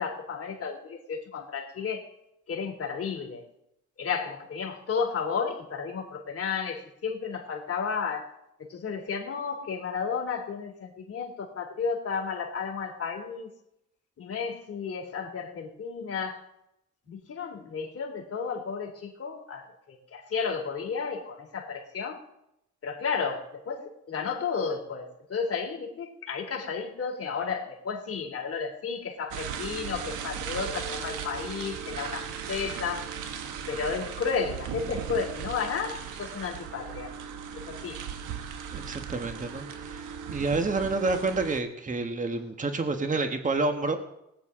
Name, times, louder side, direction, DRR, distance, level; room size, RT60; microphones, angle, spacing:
voice 1, 0.0-2.1 2.5-3.4 4.0-8.3 8.6-13.5 14.2-16.4 17.1-22.2 22.8-33.2 33.7-37.1 37.5-38.0, left 5 dB, 50° left, 1 dB, 3.3 m, -33 dB
sound 1, 29.3-41.6, right 7 dB, 85° right, 1.3 m, -37 dB
voice 2, 38.7-44.0, right 3 dB, 25° right, 7 dB, 1.4 m, -29 dB
19.5 x 9.4 x 3.8 m, 0.82 s
cardioid pair, 90°, 30 cm